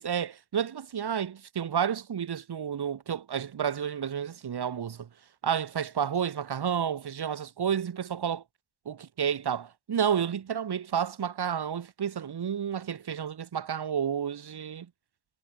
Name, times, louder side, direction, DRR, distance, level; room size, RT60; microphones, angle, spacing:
voice 1, 0.0-5.1 5.4-8.4 8.9-14.8, right 8 dB, 65° right, 7.8 m, -31 dB
cardioid pair, 75°, 42 cm